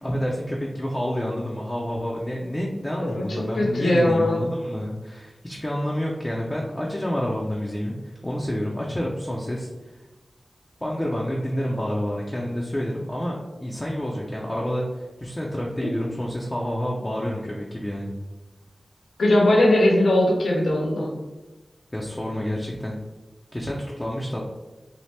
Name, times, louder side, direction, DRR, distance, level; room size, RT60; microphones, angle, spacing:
voice 1, 0.0-10.0 10.8-18.1 21.9-23.0 23.5-24.4, equal, 25° left, -3 dB, 0.5 m, -29 dB
voice 2, 3.0-4.5 19.2-21.1, left 1 dB, 90° left, -2 dB, 0.6 m, -20 dB
2.8 x 2.0 x 3.2 m, 1.1 s
cardioid pair, 40°, 0 cm